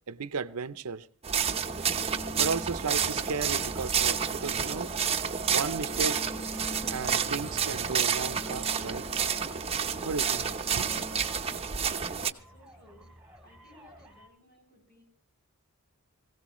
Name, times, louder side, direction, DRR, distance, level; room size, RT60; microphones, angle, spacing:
voice 1, 0.1-1.1 2.4-4.9 5.5-6.2 6.9-9.0 10.0-10.5 10.8-11.0, right 4 dB, 80° right, 0.7 m, -34 dB
sound 1, 1.2-12.3, right 7 dB, 30° right, 0.9 m, -30 dB
sound 2, 1.4-11.4, left 1 dB, 20° left, 0.7 m, -46 dB
sound 3, 1.6-5.0 5.9-14.3, right 1 dB, 5° right, 2.9 m, -51 dB
voice 2, 12.0-13.1 13.4-15.0, left 2 dB, 45° left, 7.3 m, -58 dB
23.0 x 16.5 x 3.1 m
head